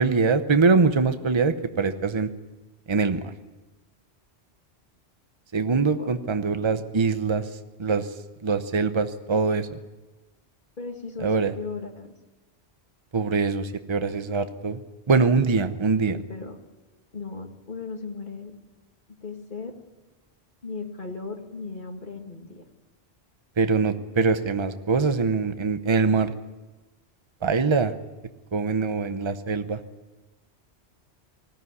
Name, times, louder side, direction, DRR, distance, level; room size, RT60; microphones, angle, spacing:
voice 1, 0.0-2.3 2.9-3.2 5.5-7.5 7.8-8.1 8.4-9.8 11.2-11.5 13.1-14.8 15.1-16.2 23.6-26.3 27.4-27.9 28.5-29.8, right 4 dB, 30° right, 10 dB, 0.9 m, -23 dB
voice 2, 5.6-6.6 10.8-12.1 16.1-16.6 17.1-18.5 19.2-19.7 20.6-22.6, left 4 dB, 50° left, 3 dB, 2.3 m, -37 dB
19.5 x 15.5 x 9.7 m, 1.1 s
omnidirectional pair, 1.1 m